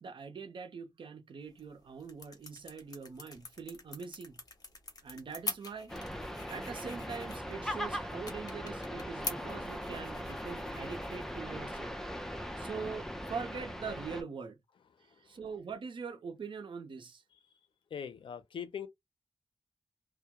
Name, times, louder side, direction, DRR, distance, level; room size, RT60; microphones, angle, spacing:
voice 1, 0.0-4.4 5.0-6.0 6.4-11.9 12.3-14.6 15.0-17.2, right 5 dB, 65° right, 0.6 m, -43 dB
sound 1, 1.4-12.9, left 3 dB, 45° left, 1.0 m, -46 dB
sound 2, 5.9-14.2, equal, 5° left, 0.5 m, -40 dB
voice 2, 17.9-18.9, left 7 dB, 75° left, 0.5 m, -40 dB
2.2 x 2.1 x 2.8 m
cardioid pair, 65°, 9 cm